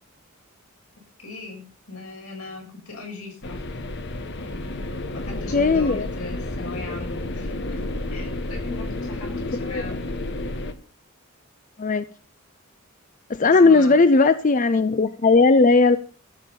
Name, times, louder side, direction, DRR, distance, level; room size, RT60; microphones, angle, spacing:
voice 1, 1.2-3.6 4.4-7.8 8.1-10.0 13.4-14.0, left 3 dB, 90° left, 6.7 m, -39 dB
sound 1, 3.4-10.7, left 2 dB, 55° left, 1.2 m, -31 dB
voice 2, 5.5-6.1 9.7-9.8 11.8-12.0 13.3-16.0, left 3 dB, 35° left, 0.5 m, -17 dB
14.5 x 7.1 x 5.6 m
head